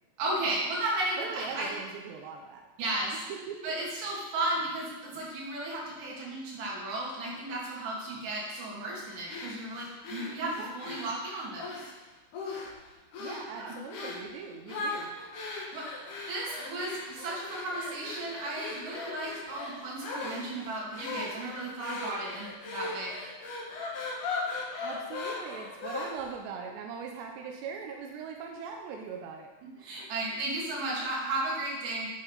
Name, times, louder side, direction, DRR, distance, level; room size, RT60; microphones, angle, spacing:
voice 1, 0.2-1.8 2.8-3.2 3.6-11.7 13.6-13.8 15.7-23.1 29.6-32.1, right 2 dB, 60° right, -5 dB, 4.3 m, -34 dB
voice 2, 1.2-2.6 3.3-3.7 10.4-11.1 13.2-15.1 24.8-29.5, right 6 dB, 80° right, 2 dB, 2.6 m, -41 dB
sound 1, 9.3-11.9 12.3-12.8 13.1-13.5 13.9-14.3 14.7-26.4, left 3 dB, 65° left, 2.0 m, -38 dB
9.5 x 9.1 x 4.0 m, 1.2 s
omnidirectional pair, 5.7 m